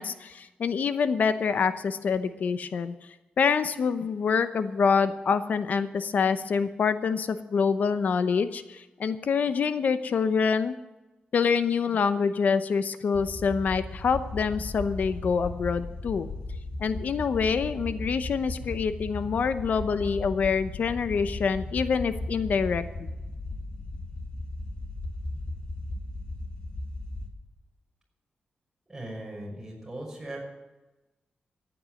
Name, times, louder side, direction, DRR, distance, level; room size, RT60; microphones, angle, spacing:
voice 1, 0.0-2.9 3.4-10.7 11.3-16.3 16.8-23.1, left 6 dB, 60° left, 11 dB, 0.8 m, -26 dB
sound 1, 13.1-27.3, left 2 dB, 30° left, 2.5 m, -36 dB
voice 2, 28.9-30.4, right 1 dB, 15° right, -2 dB, 5.6 m, -38 dB
14.5 x 9.4 x 9.0 m, 1.1 s
wide cardioid pair, 145°, 3 cm